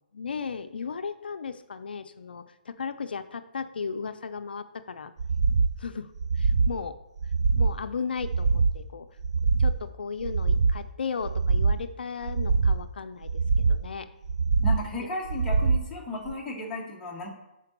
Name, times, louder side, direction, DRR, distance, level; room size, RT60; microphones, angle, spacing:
voice 1, 0.1-5.1 5.8-6.9 7.6-9.1 9.6-13.3 13.6-14.1 15.0-15.1, left 5 dB, 75° left, 10 dB, 0.5 m, -35 dB
sound 1, 5.2-5.7 6.2-6.8 7.2-7.8 8.2-8.8 9.2-9.8 10.2-10.8 11.2-11.8 12.2-12.8 13.2-13.8 14.2-14.8 15.3-15.8 16.3-16.4, right 4 dB, 40° right, 0.3 m, -24 dB
voice 2, 14.6-17.3, left 1 dB, 5° left, -4 dB, 0.9 m, -34 dB
5.8 x 4.5 x 6.0 m, 0.93 s
hypercardioid pair, 170°, 5 cm